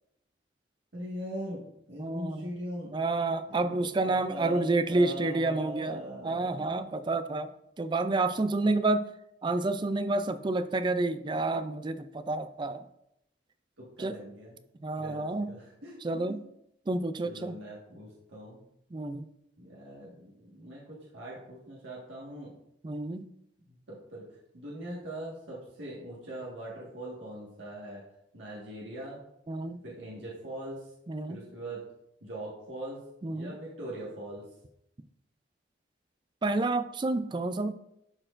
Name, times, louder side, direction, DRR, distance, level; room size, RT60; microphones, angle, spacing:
voice 1, 0.9-2.9 3.5-6.8 14.0-14.6 15.0-16.2 17.2-18.6 19.6-22.5 23.7-24.2 24.5-28.0 28.3-29.2 29.8-30.8 31.3-31.8 32.2-33.0 33.3-34.4, right 1 dB, 85° right, -5 dB, 1.7 m, -41 dB
voice 2, 2.0-2.5 2.9-7.5 7.8-9.1 9.4-12.8 14.0-14.2 14.8-15.5 16.0-16.4 16.9-17.6 18.9-19.3 22.8-23.2 29.5-29.8 31.1-31.4 33.2-33.5 36.4-37.7, right 2 dB, 25° right, 11 dB, 0.4 m, -29 dB
12.0 x 4.3 x 2.5 m, 0.81 s
head